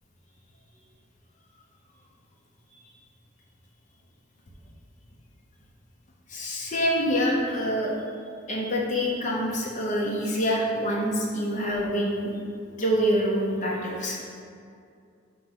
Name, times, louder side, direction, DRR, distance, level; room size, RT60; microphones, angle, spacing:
voice 1, 6.3-7.9 8.5-12.3 12.8-14.2, equal, 40° left, -3 dB, 0.8 m, -26 dB
6.2 x 3.0 x 5.5 m, 2.4 s
head